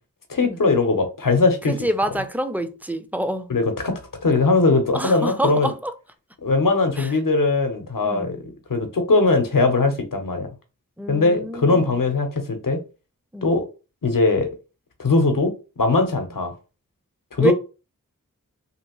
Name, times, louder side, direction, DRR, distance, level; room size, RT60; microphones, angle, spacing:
voice 1, 0.3-1.7 3.5-5.7 6.4-8.4 8.7-10.5 11.1-12.8 13.4-13.6 14.0-14.5 15.0-15.5 15.8-16.5 17.3-17.5, left 3 dB, 75° left, 0.8 m, -20 dB
voice 2, 1.7-3.5 4.9-5.9 7.0-7.1 8.0-8.3 11.0-11.9 13.3-13.5 17.4-17.5, right 1 dB, 5° right, 0.4 m, -26 dB
2.8 x 2.6 x 2.9 m
wide cardioid pair, 45°, 33 cm